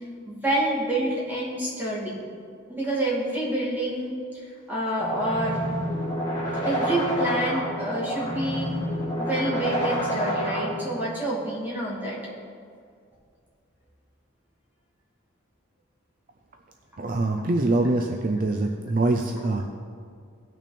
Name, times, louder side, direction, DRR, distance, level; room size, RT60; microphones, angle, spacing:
voice 1, 0.2-2.2 2.7-4.1 4.7-5.7 6.6-8.8 9.2-12.2 18.0-18.1, right 1 dB, 10° right, -7 dB, 2.5 m, -28 dB
sound 1, 5.0-11.0, equal, 20° left, 2.5 m, -28 dB
voice 2, 17.0-19.6, right 2 dB, 45° right, 4 dB, 0.5 m, -24 dB
17.5 x 6.1 x 4.3 m, 2.2 s
head